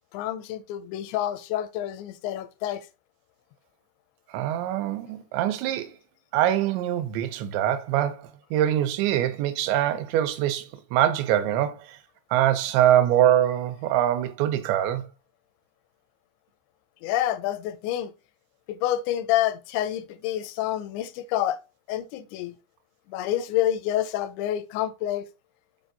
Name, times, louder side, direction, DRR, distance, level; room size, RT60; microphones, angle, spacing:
voice 1, 0.1-2.9 17.0-18.1 18.7-21.6 21.9-22.5 23.1-25.3, left 12 dB, 85° left, 2.9 m, -28 dB
voice 2, 4.3-5.9 6.3-12.0 12.3-15.0, right 11 dB, 85° right, 3.0 m, -24 dB
7.8 x 4.6 x 3.9 m
omnidirectional pair, 5.2 m